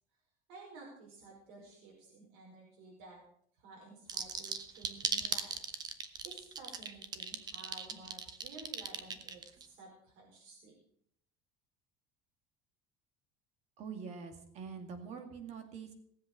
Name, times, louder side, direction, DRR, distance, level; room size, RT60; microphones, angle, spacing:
voice 1, 0.5-3.2 3.6-5.5 6.2-10.7, right 3 dB, 80° right, -2 dB, 5.1 m, -53 dB
sound 1, 4.1-9.7, right 6 dB, 25° right, 0.9 m, -37 dB
voice 2, 13.8-15.9, right 6 dB, 45° right, 7 dB, 2.3 m, -45 dB
18.0 x 7.9 x 6.7 m, 0.67 s
cardioid pair, 170°, 17 cm